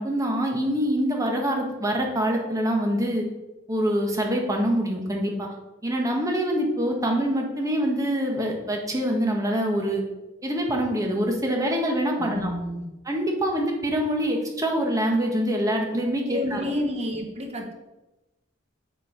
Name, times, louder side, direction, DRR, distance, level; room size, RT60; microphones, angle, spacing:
voice 1, 0.0-3.2 3.7-5.5 5.8-10.0 10.4-12.5 13.1-16.7, equal, 20° right, 1 dB, 1.4 m, -25 dB
voice 2, 12.2-12.9 16.3-17.7, equal, 35° right, 2 dB, 1.3 m, -30 dB
7.9 x 4.6 x 5.1 m, 1.0 s
head